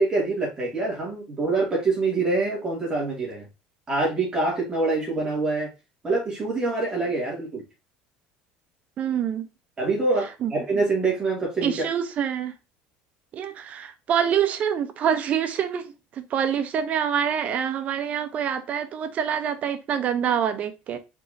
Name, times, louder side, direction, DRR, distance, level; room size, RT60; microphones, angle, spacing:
voice 1, 0.0-3.4 3.9-5.7 6.0-7.6 9.8-11.7, right 3 dB, 25° right, 2.3 m, -25 dB
voice 2, 9.0-9.5 10.4-10.5 11.6-12.5 13.3-15.9 16.1-21.0, right 8 dB, 45° right, 0.8 m, -26 dB
4.6 x 4.3 x 2.7 m
cardioid pair, 125°, 3 cm